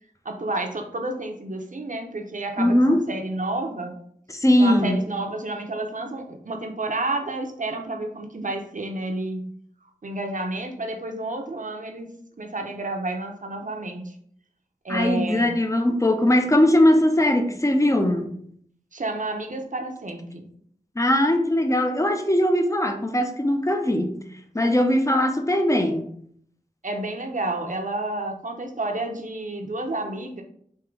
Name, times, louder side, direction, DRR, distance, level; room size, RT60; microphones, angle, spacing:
voice 1, 0.2-3.9 4.6-9.4 10.0-12.1 12.4-14.1 14.8-15.5 18.9-20.4 26.8-30.4, right 2 dB, 60° right, 3 dB, 0.8 m, -30 dB
voice 2, 2.6-3.0 4.3-5.0 14.9-18.3 21.0-24.2 24.5-26.0, left 1 dB, 20° left, 5 dB, 0.6 m, -20 dB
3.7 x 2.9 x 4.5 m, 0.65 s
wide cardioid pair, 60°, 15 cm